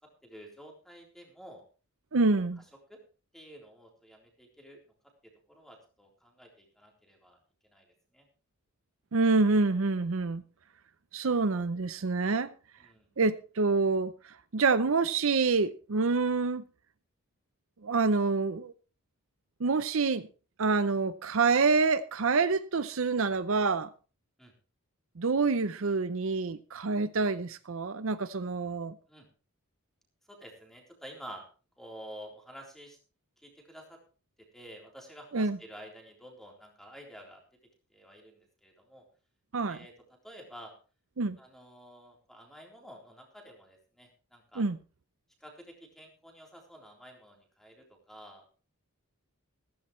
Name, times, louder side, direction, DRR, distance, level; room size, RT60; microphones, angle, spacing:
voice 1, 0.2-1.6 2.3-2.4 2.9-3.0 3.3-4.8 5.5-7.4 7.6-7.8 8.1-8.3 12.8-13.1 24.4-24.5 29.1-29.3 30.3-31.4 31.8-33.0 33.4-34.0 34.5-37.4 37.9-39.0 39.7-39.9 40.2-40.7 41.4-44.6 45.4-45.7 46.0-48.6, equal, ahead, 3.8 m, -50 dB
voice 2, 2.1-2.6 9.1-10.4 11.1-12.5 13.2-16.6 17.8-18.7 19.6-20.3 20.6-23.9 25.2-28.9 35.3-35.6 39.5-39.8 41.2-41.4 44.6-44.8, right 4 dB, 60° right, 0.6 m, -27 dB
15.5 x 14.5 x 3.2 m
head